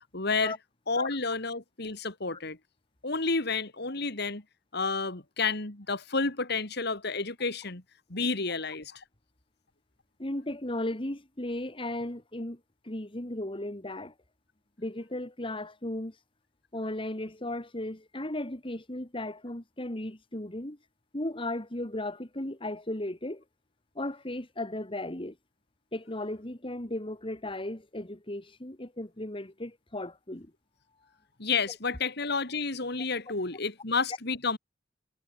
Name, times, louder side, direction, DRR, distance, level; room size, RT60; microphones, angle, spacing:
voice 1, 0.1-0.5 0.9-2.6 3.0-4.4 4.7-7.8 8.1-9.0 31.4-34.6, left 4 dB, 55° left, 3.0 m, -30 dB
voice 2, 10.2-14.1 14.8-16.2 16.7-20.8 21.1-23.4 24.0-25.4 25.9-30.5, left 1 dB, 25° left, 2.5 m, -36 dB
head